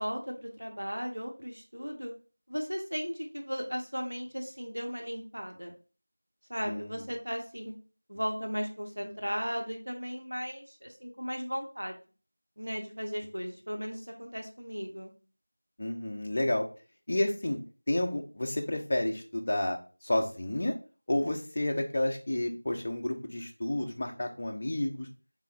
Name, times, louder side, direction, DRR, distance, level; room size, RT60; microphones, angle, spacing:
voice 1, 0.0-2.1 2.5-5.7 6.5-7.7 8.1-12.0 12.6-15.1, equal, 75° right, 2 dB, 1.0 m, -36 dB
voice 2, 6.6-7.0 15.8-16.7 17.1-17.6 17.9-20.7 21.1-25.1, left 1 dB, 20° left, 2 dB, 0.4 m, -30 dB
3.6 x 3.5 x 3.1 m, 0.35 s
figure-of-eight pair, 175°, 0 cm